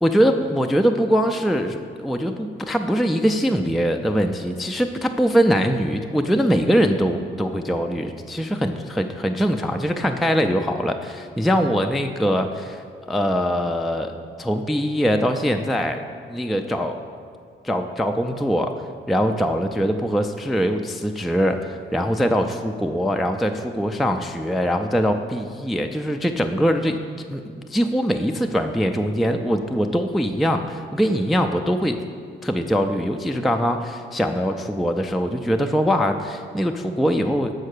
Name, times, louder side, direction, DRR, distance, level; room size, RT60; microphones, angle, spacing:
voice 1, 0.0-12.8 13.1-16.0 16.3-17.0 17.6-18.7 19.1-27.0 27.3-32.0 32.4-37.5, equal, ahead, 5 dB, 0.3 m, -22 dB
6.5 x 4.3 x 6.5 m, 2.1 s
cardioid pair, 90°, 20 cm